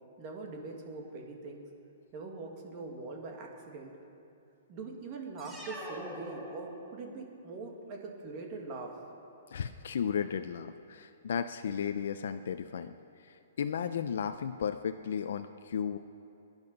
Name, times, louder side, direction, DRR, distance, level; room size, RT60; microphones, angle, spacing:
voice 1, 0.2-1.6 2.1-3.9 4.7-9.0, right 3 dB, 25° right, 1 dB, 1.9 m, -42 dB
sound 1, 5.4-7.2, equal, 5° right, 1.5 m, -44 dB
voice 2, 9.5-12.9 13.2-16.0, left 7 dB, 60° left, 8 dB, 0.6 m, -34 dB
22.5 x 10.5 x 5.3 m, 2.7 s
hypercardioid pair, 175°, 0 cm